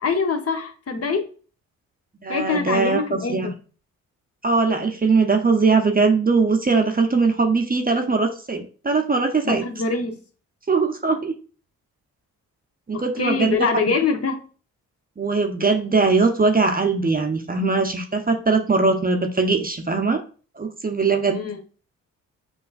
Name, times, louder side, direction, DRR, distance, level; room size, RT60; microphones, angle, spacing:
voice 1, 0.0-1.3 2.3-3.5 9.4-10.2 12.9-14.4 21.3-21.6, left 4 dB, 40° left, 4 dB, 0.8 m, -24 dB
voice 2, 2.2-3.5 4.4-9.6 10.7-11.3 12.9-13.7 15.2-20.2 20.6-21.4, right 4 dB, 25° right, 5 dB, 0.6 m, -20 dB
5.6 x 2.4 x 2.4 m, 0.38 s
supercardioid pair, 50°, 38 cm